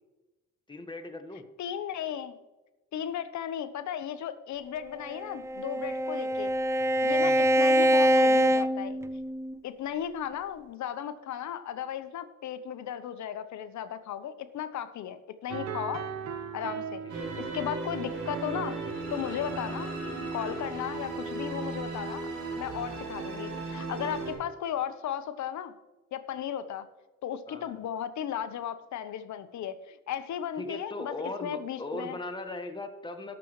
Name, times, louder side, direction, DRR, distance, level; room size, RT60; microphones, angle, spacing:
voice 1, 0.7-1.5 7.2-7.4 17.0-17.1 27.5-27.8 30.6-33.3, left 2 dB, 15° left, 6 dB, 1.5 m, -38 dB
voice 2, 1.6-2.3 2.9-6.5 7.0-9.0 9.6-16.0 16.5-18.8 19.1-19.9 20.3-22.3 22.6-25.7 26.1-26.8 27.2-31.1 31.4-32.2, left 9 dB, 70° left, 11 dB, 0.9 m, -35 dB
Bowed string instrument, 5.1-9.6, equal, 10° right, 0.4 m, -24 dB
sound 1, 15.5-21.7, right 6 dB, 60° right, 1.2 m, -40 dB
sound 2, 17.1-24.3, right 3 dB, 80° right, 4.2 m, -36 dB
18.5 x 7.1 x 3.1 m, 1.1 s
cardioid pair, 90°, 30 cm